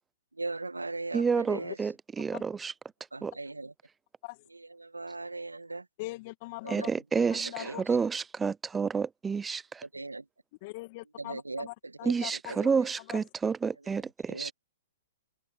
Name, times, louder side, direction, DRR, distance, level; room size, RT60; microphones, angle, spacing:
voice 1, 0.3-1.8 3.1-3.7 4.5-5.9 6.6-6.9 7.6-7.8 9.9-10.3 11.2-12.7 14.3-14.5, right 3 dB, 90° right, 1.6 m, -39 dB
voice 2, 1.1-2.7 3.2-3.4 6.7-9.8 12.0-14.5, right 5 dB, 10° right, 0.8 m, -30 dB
voice 3, 6.0-6.9 7.3-7.8 10.6-11.7 12.2-12.5 13.1-13.2, left 22 dB, 40° left, 2.2 m, -41 dB
open air
figure-of-eight pair, 120°, 0 cm